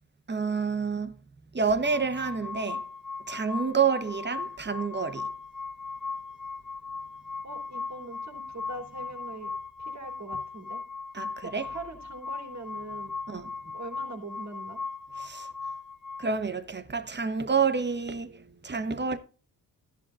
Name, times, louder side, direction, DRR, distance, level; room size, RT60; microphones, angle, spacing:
voice 1, 0.3-1.1 1.5-2.8 3.3-5.3 11.1-11.7 13.3-13.5 15.2-15.5 16.2-19.2, right 5 dB, 25° right, 1.1 m, -28 dB
sound 1, 1.8-16.3, left 4 dB, ahead, 2.1 m, -38 dB
voice 2, 7.4-9.5 9.8-10.8 11.4-13.1 13.6-14.8, right 2 dB, 45° right, 3.4 m, -42 dB
13.0 x 11.0 x 2.5 m
cardioid pair, 65°, 39 cm